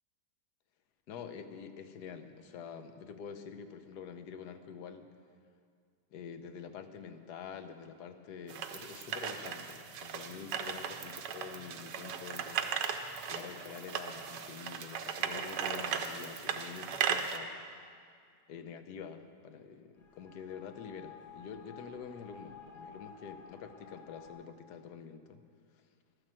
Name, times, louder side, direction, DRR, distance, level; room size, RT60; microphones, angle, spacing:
voice 1, 1.1-5.1 6.1-13.0 13.3-17.5 18.5-25.4, left 7 dB, 70° left, 8 dB, 1.4 m, -47 dB
sound 1, 8.5-17.4, right 7 dB, 85° right, 1.4 m, -37 dB
sound 2, 20.0-24.3, left 6 dB, 55° left, 2.5 m, -53 dB
12.5 x 10.0 x 7.5 m, 2.2 s
omnidirectional pair, 1.8 m